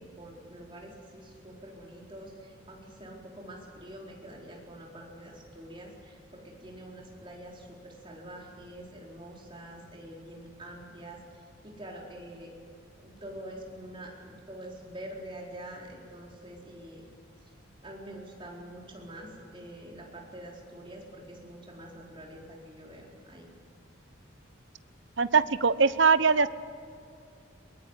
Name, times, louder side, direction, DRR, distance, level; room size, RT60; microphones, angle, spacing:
voice 1, 0.0-12.5 13.0-17.0 17.8-23.5, right 1 dB, 25° right, -2 dB, 4.4 m, -46 dB
voice 2, 25.2-26.5, right 5 dB, 65° right, 14 dB, 0.8 m, -22 dB
23.0 x 21.5 x 8.2 m, 2.4 s
head